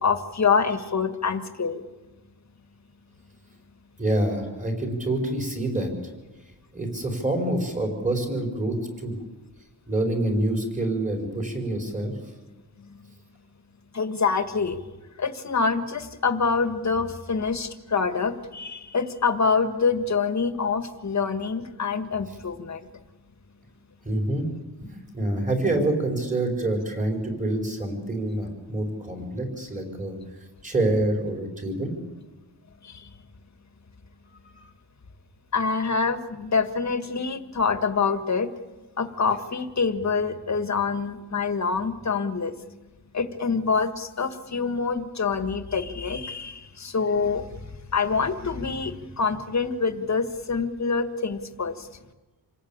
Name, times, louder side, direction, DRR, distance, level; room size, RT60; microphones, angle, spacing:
voice 1, 0.0-1.8 12.8-13.0 13.9-14.8 15.2-22.9 32.8-33.1 35.5-38.5 39.0-42.5 43.1-47.6 47.9-51.9, left 5 dB, 45° left, 9 dB, 1.7 m, -26 dB
voice 2, 4.0-5.9 6.7-9.2 9.9-12.1 24.0-24.5 24.9-30.2 30.6-31.9, right 1 dB, 20° right, 2 dB, 4.8 m, -26 dB
27.5 x 18.0 x 8.8 m, 1.2 s
wide cardioid pair, 170°, 40 cm